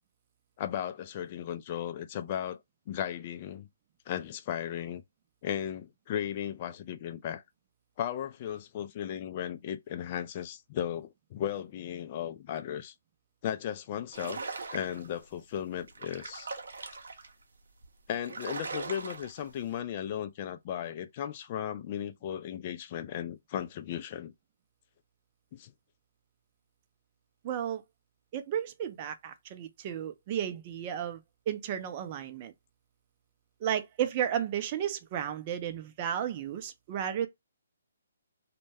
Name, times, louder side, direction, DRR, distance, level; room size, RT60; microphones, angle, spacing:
voice 1, 0.6-2.6 2.9-3.7 4.1-5.0 5.4-7.4 8.0-12.9 13.4-14.4 14.7-16.5 18.1-24.3 25.5-25.7, left 10 dB, 35° left, 0.3 m, -36 dB
sound 1, 14.1-15.2 15.7-17.3 17.8-17.9 18.1-19.5, right 4 dB, 70° right, 0.6 m, -40 dB
voice 2, 27.4-27.8 28.3-31.2 31.5-32.5 33.6-37.3, right 9 dB, 35° right, 0.5 m, -33 dB
2.2 x 2.1 x 3.3 m
figure-of-eight pair, 140°, 0 cm